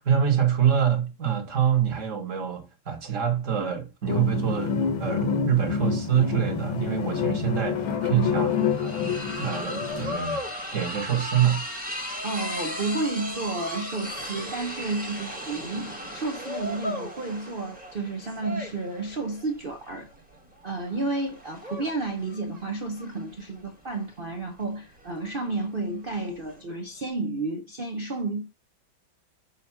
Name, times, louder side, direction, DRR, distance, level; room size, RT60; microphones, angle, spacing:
voice 1, 0.0-11.7, right 8 dB, 45° right, 1.4 m, -26 dB
sound 1, 4.1-10.1, left 6 dB, 80° left, 1.8 m, -27 dB
sound 2, 7.4-7.5 7.7-26.6, left 1 dB, 5° right, 0.9 m, -36 dB
voice 2, 8.0-8.3 12.2-20.1 20.6-28.4, right 3 dB, 80° right, 0.4 m, -31 dB
6.9 x 2.5 x 5.6 m
omnidirectional pair, 2.2 m